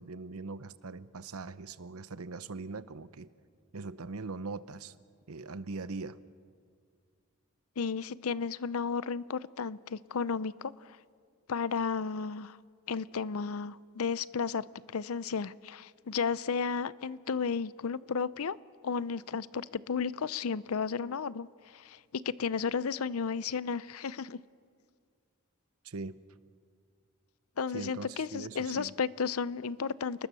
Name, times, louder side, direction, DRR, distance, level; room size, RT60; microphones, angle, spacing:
voice 1, 0.0-3.3 3.7-4.9 5.3-6.2 25.8-26.2 27.7-28.9, right 3 dB, 85° right, 15 dB, 0.8 m, -41 dB
voice 2, 7.8-11.0 11.5-12.6 12.9-14.6 14.9-18.6 18.8-21.5 21.7-24.4 27.6-30.3, left 5 dB, 75° left, 18 dB, 0.6 m, -33 dB
29.5 x 20.5 x 6.9 m, 2.1 s
head